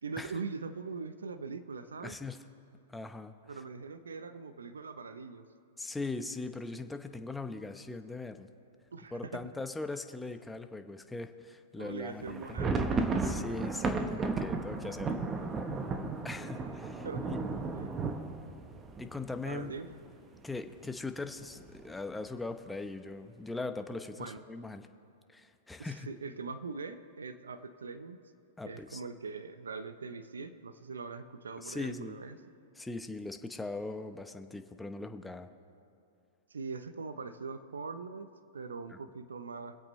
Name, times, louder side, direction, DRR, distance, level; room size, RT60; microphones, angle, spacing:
voice 1, 0.0-2.2 3.5-5.4 8.9-9.4 11.7-12.8 17.0-17.3 17.7-17.9 19.4-19.9 24.2-24.4 25.9-28.2 28.6-32.4 36.5-39.8, right 4 dB, 90° right, 11 dB, 0.7 m, -42 dB
voice 2, 2.0-2.4 2.9-3.6 5.8-8.5 9.1-12.4 13.2-15.3 16.2-17.4 19.0-19.7 20.4-24.9 25.3-26.1 28.6-29.0 31.6-32.2 32.8-35.5 38.9-39.0, left 3 dB, 5° left, 7 dB, 0.8 m, -40 dB
sound 1, 12.2-20.0 20.3-20.4 20.6-20.9 21.4-21.9, right 3 dB, 20° right, 1.0 m, -34 dB
24.5 x 8.3 x 3.2 m, 2.6 s
hypercardioid pair, 120°, 0 cm